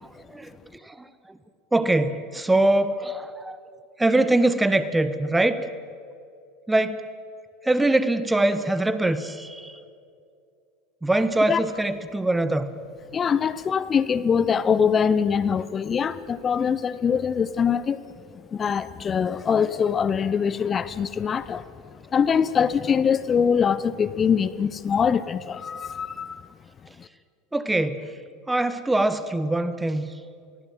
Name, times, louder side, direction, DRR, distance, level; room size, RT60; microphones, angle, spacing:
voice 1, 0.8-1.4 1.7-3.6 4.0-5.6 6.7-7.0 7.6-9.8 11.0-12.7 27.5-28.0 28.5-30.1, right 2 dB, 10° right, 12 dB, 1.5 m, -23 dB
voice 2, 13.1-18.0 18.3-26.4 27.0-27.1, left 7 dB, 25° left, 15 dB, 0.9 m, -23 dB
28.0 x 19.0 x 7.5 m, 2.4 s
figure-of-eight pair, 75°, 0 cm